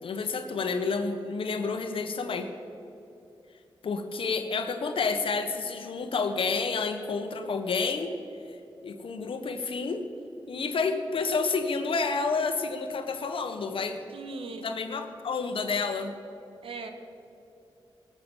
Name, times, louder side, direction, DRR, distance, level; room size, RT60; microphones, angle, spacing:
voice 1, 0.0-2.5 3.8-8.1 8.8-10.1 10.5-14.0 14.6-16.1, left 4 dB, 75° left, 7 dB, 1.3 m, -29 dB
voice 2, 14.1-14.6 16.6-16.9, right 3 dB, 85° right, 6 dB, 1.5 m, -38 dB
19.0 x 7.8 x 7.2 m, 2.8 s
cardioid pair, 60°, 9 cm